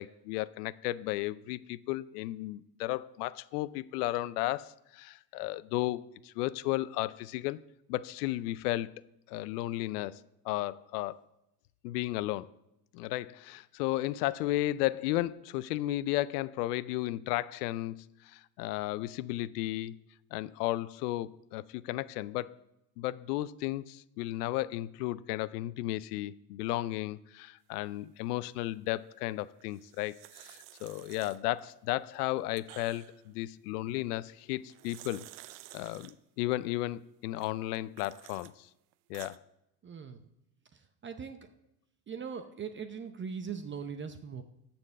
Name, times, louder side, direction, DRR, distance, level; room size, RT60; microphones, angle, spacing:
voice 1, 0.0-7.6 7.9-8.9 9.3-10.2 10.4-11.2 11.8-12.5 12.9-19.9 20.3-22.6 23.0-35.2 35.7-38.7 39.1-39.4, left 16 dB, 75° left, 18 dB, 0.6 m, -34 dB
sound 1, 29.6-31.7 32.1-33.3 34.5-36.1 37.4-38.5 38.9-39.4, right 16 dB, 80° right, 0.7 m, -52 dB
voice 2, 39.8-40.2 40.7-41.4 42.1-44.4, right 6 dB, 25° right, 8 dB, 0.7 m, -40 dB
13.0 x 4.4 x 6.6 m, 0.87 s
supercardioid pair, 95°, 47 cm